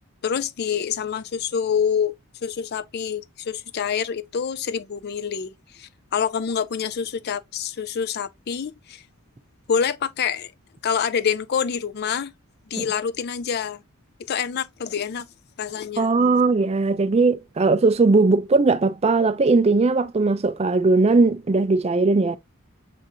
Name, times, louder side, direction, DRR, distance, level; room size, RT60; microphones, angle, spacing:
voice 1, 0.2-2.1 2.4-9.0 9.7-10.5 10.8-12.3 12.7-13.8 14.3-15.3 15.6-16.2, left 7 dB, 50° left, 0.4 m, -26 dB
voice 2, 16.0-22.4, right 3 dB, 30° right, 0.4 m, -19 dB
7.3 x 2.6 x 2.6 m
head